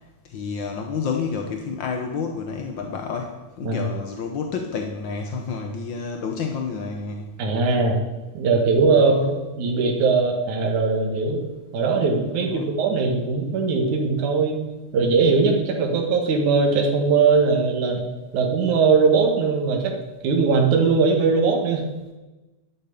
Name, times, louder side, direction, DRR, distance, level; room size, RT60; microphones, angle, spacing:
voice 1, 0.2-7.3 8.9-9.3 12.4-12.7, left 5 dB, 60° left, 4 dB, 1.2 m, -30 dB
voice 2, 7.4-8.0 8.3-11.4 11.7-14.6 14.9-18.0 18.3-20.0 20.2-21.8, right 4 dB, 75° right, 1 dB, 3.1 m, -20 dB
11.0 x 8.0 x 9.4 m, 1.1 s
omnidirectional pair, 3.4 m